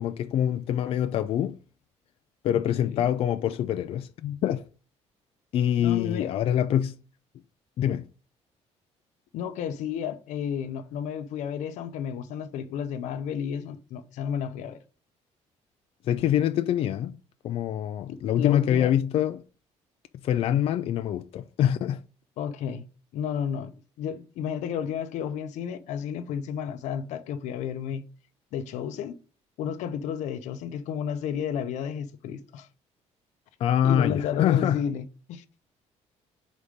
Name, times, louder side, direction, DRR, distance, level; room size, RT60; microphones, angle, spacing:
voice 1, 0.0-1.6 2.4-4.6 5.5-7.0 7.8-8.1 16.1-17.2 17.4-19.4 20.2-22.0 33.6-34.8, left 10 dB, 55° left, 0.4 m, -25 dB
voice 2, 2.5-3.1 5.8-6.3 9.3-14.8 18.1-18.9 22.4-22.9 23.1-23.7 24.0-28.1 28.5-29.1 29.6-32.7 33.8-35.4, left 8 dB, 90° left, 0.7 m, -32 dB
5.1 x 4.1 x 5.0 m
cardioid pair, 160°, 12 cm